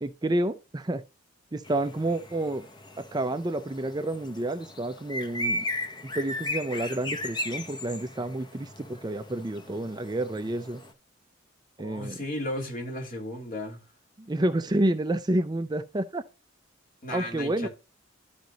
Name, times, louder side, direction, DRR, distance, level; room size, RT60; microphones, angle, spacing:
voice 1, 0.0-1.0 1.5-2.7 3.1-5.6 6.0-10.8 11.8-12.2 14.2-16.2 17.1-17.7, right 1 dB, 20° right, 0.5 m, -29 dB
sound 1, 1.6-10.9, left 1 dB, 20° left, 0.9 m, -37 dB
voice 2, 11.8-13.8 17.0-17.7, left 1 dB, 45° left, 2.9 m, -34 dB
12.0 x 5.2 x 2.9 m
head